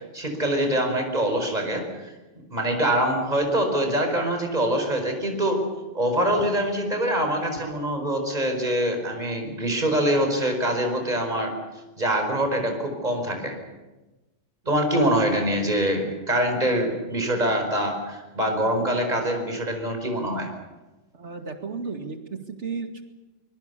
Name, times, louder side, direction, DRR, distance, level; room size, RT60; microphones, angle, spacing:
voice 1, 0.1-1.8 2.5-5.6 5.9-11.5 12.0-13.5 14.7-20.5, right 1 dB, 40° right, 4 dB, 5.0 m, -24 dB
voice 2, 14.6-15.0 21.1-23.0, right 4 dB, 80° right, 5 dB, 2.6 m, -34 dB
24.0 x 23.0 x 6.9 m, 1.1 s
omnidirectional pair, 1.2 m